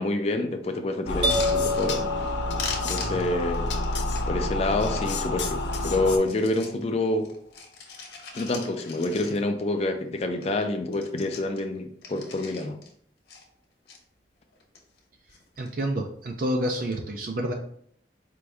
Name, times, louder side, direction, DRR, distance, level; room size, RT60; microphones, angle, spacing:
voice 1, 0.0-2.1 2.8-3.7 4.3-7.3 8.3-12.8, left 2 dB, 35° left, 5 dB, 0.4 m, -27 dB
sound 1, 1.1-6.2, left 2 dB, 85° left, 0.5 m, -29 dB
sound 2, 1.1-2.3 2.6-5.2 5.6-6.8 7.2-9.7 10.0-10.1 10.3-10.6 10.9-12.9 13.3-14.0 14.5-15.0 15.3-15.8 16.7-17.0, left 5 dB, 65° left, 1.0 m, -40 dB
sound 3, 1.2-3.1, left 1 dB, 90° right, 1.1 m, -28 dB
voice 2, 15.6-17.5, right 1 dB, 50° right, 3 dB, 0.4 m, -28 dB
4.6 x 2.6 x 3.3 m, 0.63 s
head